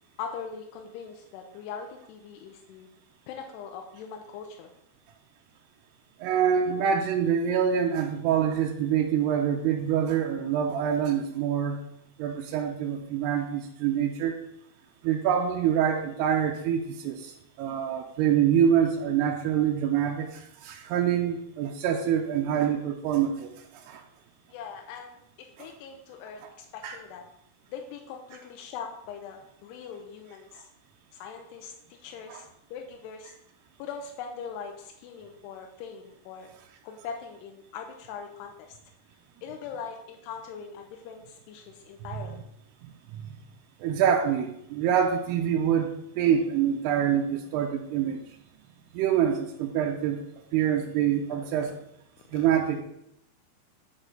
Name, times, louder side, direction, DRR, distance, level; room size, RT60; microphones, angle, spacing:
voice 1, 0.2-2.9 3.3-4.7 6.7-6.9 19.6-19.7 24.5-27.3 27.7-30.7 31.1-33.3 33.8-36.5 36.8-38.7 39.4-42.4 51.3-51.7 52.3-52.5, left 6 dB, 90° left, 3 dB, 2.8 m, -41 dB
voice 2, 6.2-11.8 12.2-14.4 15.0-24.0 26.4-26.5 26.8-27.0 32.3-32.4 43.1-43.3 43.8-48.2 48.9-50.2 50.5-51.7 52.3-52.8, right 8 dB, 85° right, 1 dB, 2.7 m, -26 dB
10.0 x 6.1 x 3.9 m, 0.78 s
omnidirectional pair, 4.7 m